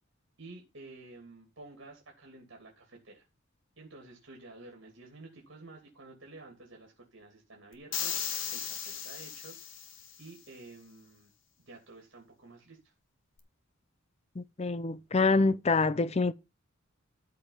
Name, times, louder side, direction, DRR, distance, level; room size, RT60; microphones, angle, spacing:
voice 1, 0.4-3.3 3.8-8.2 8.5-9.5 10.2-11.3 11.6-12.9, right 2 dB, 60° right, 2.8 m, -51 dB
sound 1, 7.9-10.2, left 8 dB, 65° left, 1.7 m, -36 dB
voice 2, 14.4-16.3, left 3 dB, 30° left, 0.5 m, -26 dB
13.5 x 5.2 x 5.6 m
head